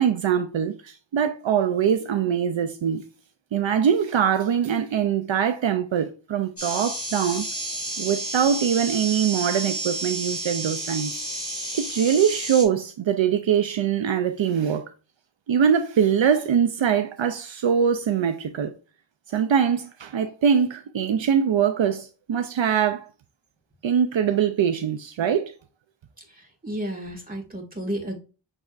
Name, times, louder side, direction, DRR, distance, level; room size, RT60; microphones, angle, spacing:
voice 1, 0.0-3.0 3.5-7.4 8.0-11.2 11.7-14.9 15.5-18.7 19.3-23.1 23.8-25.5, right 8 dB, 75° right, 0.5 m, -23 dB
sound 1, 6.6-12.6, right 2 dB, 40° left, 2.3 m, -31 dB
voice 2, 26.3-28.2, right 1 dB, 20° right, 1.8 m, -32 dB
6.4 x 3.4 x 2.4 m
wide cardioid pair, 55°, 47 cm